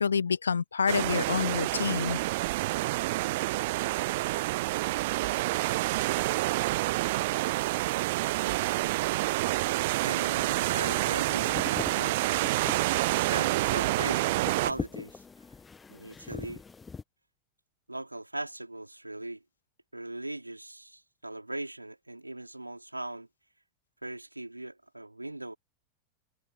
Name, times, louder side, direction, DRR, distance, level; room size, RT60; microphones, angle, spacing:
voice 1, 0.0-2.2, left 6 dB, 75° left, 0.4 m, -27 dB
sound 1, 0.9-14.7, right 19 dB, 50° right, 0.4 m, -28 dB
voice 2, 10.0-12.3 12.9-15.2 15.9-16.6 17.9-19.4 19.9-23.3 24.0-25.5, right 2 dB, 85° right, 4.2 m, -39 dB
sound 2, 10.5-17.0, left 5 dB, 15° left, 1.4 m, -43 dB
figure-of-eight pair, 90°, 0 cm